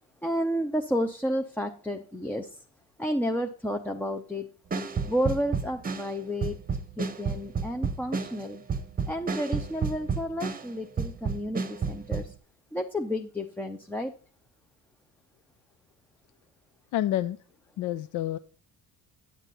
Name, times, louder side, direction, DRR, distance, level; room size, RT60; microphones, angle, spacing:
voice 1, 0.2-2.5 3.0-4.5 5.0-6.6 7.0-8.6 9.1-12.3 12.7-14.1, equal, 5° left, 4 dB, 0.6 m, -31 dB
sound 1, 4.7-10.7 11.0-12.3, right 5 dB, 25° right, 0.9 m, -31 dB
voice 2, 16.9-17.4 17.8-18.4, left 13 dB, 60° left, 13 dB, 0.5 m, -28 dB
9.2 x 7.4 x 4.0 m, 0.41 s
cardioid pair, 115°, 35 cm